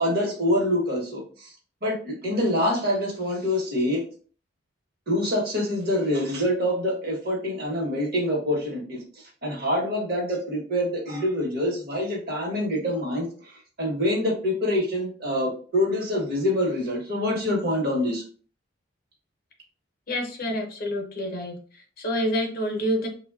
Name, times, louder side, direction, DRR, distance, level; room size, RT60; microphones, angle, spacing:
voice 1, 0.0-1.5 1.8-4.0 5.1-18.2, left 1 dB, 50° right, 0 dB, 0.9 m, -26 dB
voice 2, 20.1-21.6 22.0-23.1, equal, 45° left, 2 dB, 0.6 m, -27 dB
3.0 x 2.1 x 2.3 m, 0.42 s
head